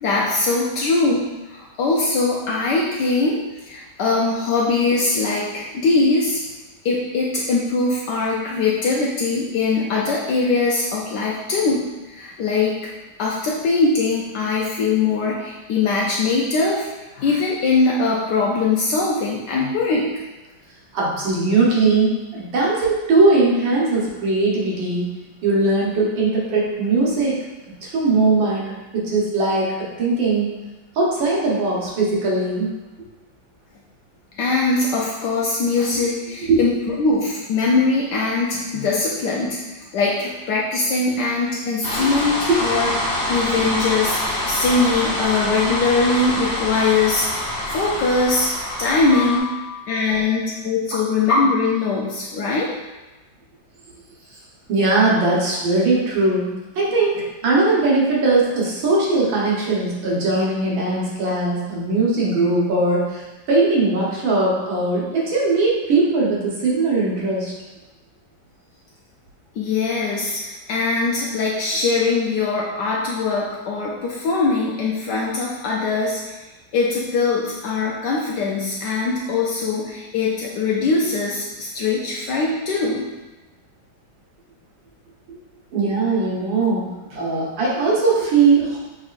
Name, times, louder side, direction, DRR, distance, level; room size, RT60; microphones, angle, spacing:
voice 1, 0.0-3.4 3.7-6.4 6.8-11.8 12.1-12.8 13.2-20.1 34.4-42.9 43.3-47.3 47.7-48.5 48.8-49.5 49.9-52.7 69.6-76.4 76.7-83.1, left 3 dB, 75° left, -3 dB, 1.1 m, -21 dB
voice 2, 20.9-25.1 25.4-27.3 27.8-30.5 31.0-32.7 36.0-36.1 36.4-36.7 41.9-42.6 49.1-50.2 50.9-51.0 54.7-56.5 56.8-67.5 85.7-88.8, right 3 dB, 85° right, -5 dB, 1.8 m, -20 dB
sound 1, 41.8-49.4, left 1 dB, 40° left, 1.2 m, -25 dB
6.1 x 3.1 x 2.5 m, 1.1 s
omnidirectional pair, 2.0 m